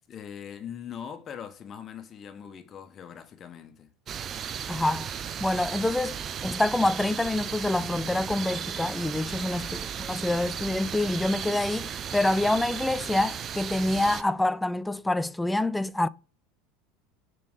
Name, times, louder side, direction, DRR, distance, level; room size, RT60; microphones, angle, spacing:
voice 1, 0.1-3.9, left 8 dB, 35° left, 1.3 m, -41 dB
sound 1, 4.1-14.2, right 8 dB, 35° right, 0.7 m, -35 dB
voice 2, 4.7-5.1 5.4-16.1, left 2 dB, 10° left, 0.4 m, -27 dB
7.1 x 3.7 x 6.4 m
hypercardioid pair, 80°, 0 cm